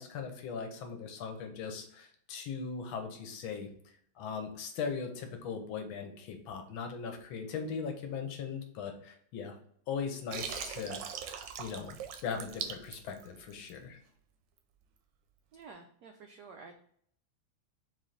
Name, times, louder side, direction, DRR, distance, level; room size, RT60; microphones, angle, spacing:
voice 1, 0.0-3.7 4.2-9.6 9.9-11.0 11.6-14.0, left 6 dB, 75° left, 5 dB, 1.5 m, -39 dB
Water, 10.3-13.8, right 8 dB, 70° right, 1.2 m, -40 dB
voice 2, 15.5-16.7, right 4 dB, 90° right, 4 dB, 0.8 m, -51 dB
4.2 x 3.2 x 3.9 m, 0.64 s
omnidirectional pair, 2.3 m